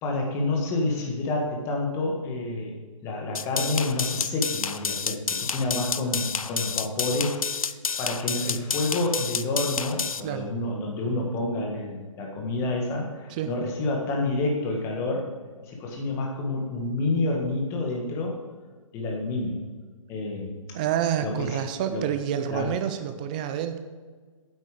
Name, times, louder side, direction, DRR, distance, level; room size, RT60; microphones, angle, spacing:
voice 1, 0.0-2.8 3.0-7.4 8.0-15.3 15.6-18.4 18.9-19.6 20.1-20.5 21.2-21.6 21.9-22.0 22.5-22.7, left 2 dB, 15° left, 0 dB, 1.5 m, -28 dB
sound 1, 3.3-10.2, left 6 dB, 85° left, 0.6 m, -29 dB
voice 2, 10.2-10.5 13.3-13.5 20.7-23.8, right 10 dB, 15° right, 9 dB, 0.4 m, -28 dB
9.8 x 8.0 x 4.9 m, 1.5 s
hypercardioid pair, 155°, 17 cm